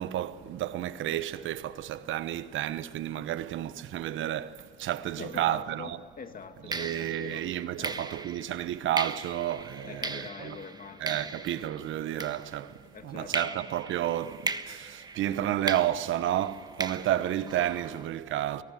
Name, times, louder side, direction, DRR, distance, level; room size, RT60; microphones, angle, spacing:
voice 1, 0.0-6.0 6.7-10.6 11.0-12.8 13.0-18.6, right 12 dB, 85° right, 1.0 m, -31 dB
voice 2, 5.2-7.5 7.8-8.1 9.8-11.5 12.9-13.6, left 5 dB, 45° left, 2.2 m, -44 dB
sound 1, 5.6-5.8 6.7-12.9 13.3-18.1, right 3 dB, 20° right, 1.3 m, -38 dB
23.5 x 18.5 x 7.7 m
cardioid pair, 90°, 20 cm